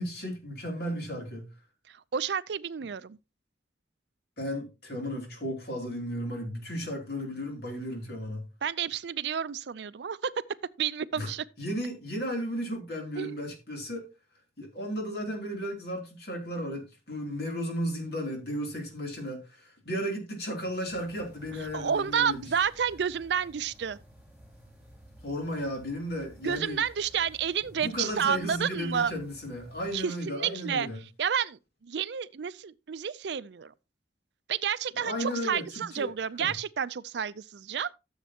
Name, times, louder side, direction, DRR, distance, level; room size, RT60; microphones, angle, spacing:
voice 1, 0.0-1.5 4.4-8.5 11.2-11.3 11.6-14.0 14.6-22.5 25.2-26.8 27.7-31.0 34.9-36.1 36.4-36.5, equal, 60° left, 3.0 m, -34 dB
voice 2, 1.9-3.2 8.6-10.3 10.8-11.4 13.2-13.4 21.7-24.0 26.4-29.1 29.9-33.7 34.5-37.9, right 7 dB, 70° right, 0.4 m, -30 dB
sound 1, 20.8-30.0, equal, ahead, 4.7 m, -54 dB
13.5 x 7.3 x 2.8 m
head